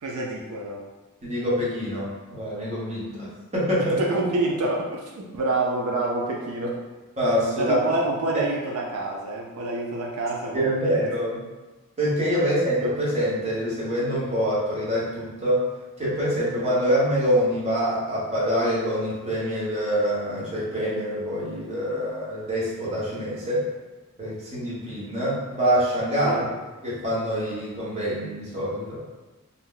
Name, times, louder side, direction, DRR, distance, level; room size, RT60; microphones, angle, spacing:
voice 1, 0.0-0.8 3.8-6.8 7.6-11.0 26.2-26.5, right 2 dB, 85° right, -2 dB, 0.5 m, -27 dB
voice 2, 1.2-4.0 7.2-7.9 10.5-11.4 12.0-15.6 16.0-23.6 24.2-26.5 26.8-29.0, equal, 30° right, -8 dB, 1.0 m, -25 dB
2.7 x 2.1 x 3.7 m, 1.2 s
head